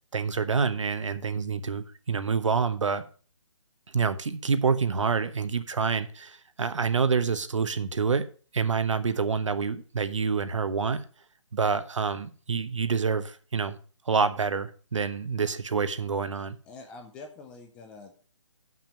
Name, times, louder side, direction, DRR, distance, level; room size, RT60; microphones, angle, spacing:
voice 1, 0.1-3.0 3.9-8.3 8.5-11.0 11.5-13.8 14.1-16.6, right 5 dB, 75° right, 1.0 m, -27 dB
voice 2, 16.7-18.1, left 3 dB, 5° left, 0.4 m, -45 dB
7.1 x 5.9 x 5.9 m
hypercardioid pair, 155°, 16 cm